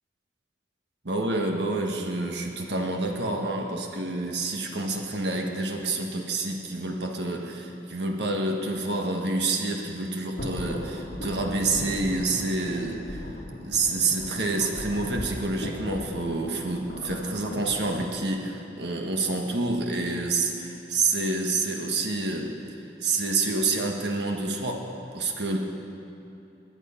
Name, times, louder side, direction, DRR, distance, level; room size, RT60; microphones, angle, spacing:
voice 1, 1.0-13.2 13.6-25.6, right 3 dB, 75° right, 2 dB, 1.6 m, -28 dB
sound 1, 10.4-18.1, equal, 70° left, 2.3 m, -37 dB
21.5 x 9.2 x 5.8 m, 2.8 s
head